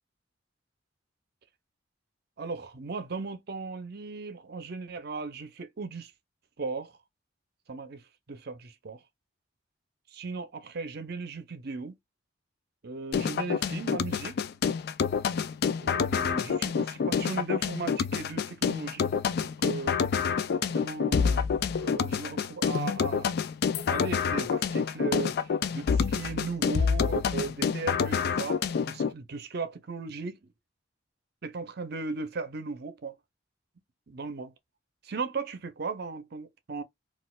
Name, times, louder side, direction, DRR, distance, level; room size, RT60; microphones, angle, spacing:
voice 1, 2.4-6.1 6.6-6.9 7.7-9.0 10.1-12.0 12.8-14.4 15.8-19.1 19.4-20.0 20.6-23.3 23.9-30.5 31.4-33.1 34.1-34.5 35.0-36.8, right 4 dB, 55° right, 0.6 m, -37 dB
sound 1, 13.1-29.1, left 6 dB, 55° left, 0.3 m, -28 dB
4.1 x 2.4 x 2.2 m
head